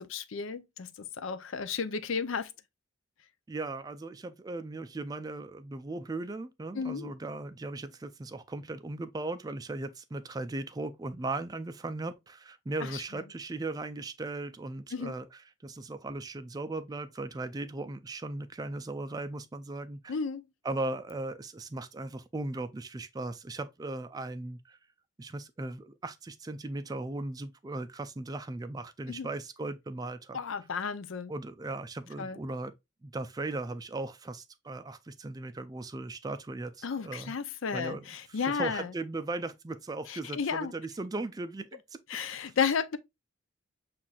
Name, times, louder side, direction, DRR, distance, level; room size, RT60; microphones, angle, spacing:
voice 1, 0.0-2.5 6.7-7.1 12.8-13.0 14.9-15.1 20.1-20.4 29.1-29.3 30.3-31.3 32.2-32.4 36.8-38.9 40.1-40.7 42.1-43.0, left 6 dB, 80° left, 0.5 m, -33 dB
voice 2, 3.5-20.2 20.6-24.8 25.2-30.4 31.3-32.7 33.0-37.3 37.7-38.1 38.5-42.0, right 2 dB, 20° right, 0.3 m, -37 dB
7.2 x 2.5 x 2.3 m
head